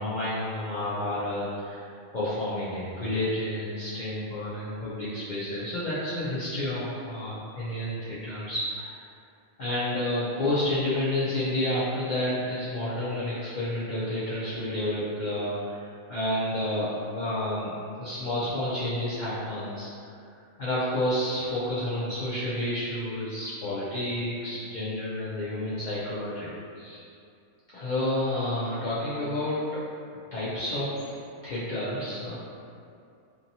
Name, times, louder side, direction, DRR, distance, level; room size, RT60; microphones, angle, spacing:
voice 1, 0.0-9.0 9.6-16.9 17.1-17.7 18.0-19.9 20.6-27.0 27.7-29.8 30.3-31.1 31.4-32.4, left 1 dB, 65° left, -11 dB, 0.4 m, -30 dB
2.7 x 2.7 x 2.6 m, 2.5 s
omnidirectional pair, 1.4 m